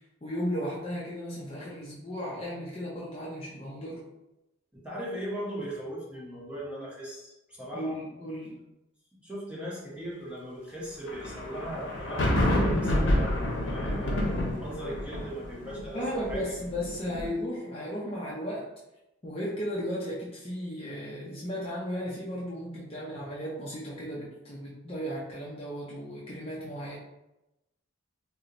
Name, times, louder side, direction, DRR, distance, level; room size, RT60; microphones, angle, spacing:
voice 1, 0.2-4.0 7.7-8.6 15.9-18.6 19.2-26.9, equal, 30° left, -6 dB, 0.5 m, -35 dB
voice 2, 4.7-8.0 9.2-16.5, equal, 5° right, -7 dB, 0.8 m, -38 dB
sound 1, 11.1-17.3, left 1 dB, 70° left, 0.8 m, -28 dB
4.3 x 2.0 x 2.5 m, 0.95 s
head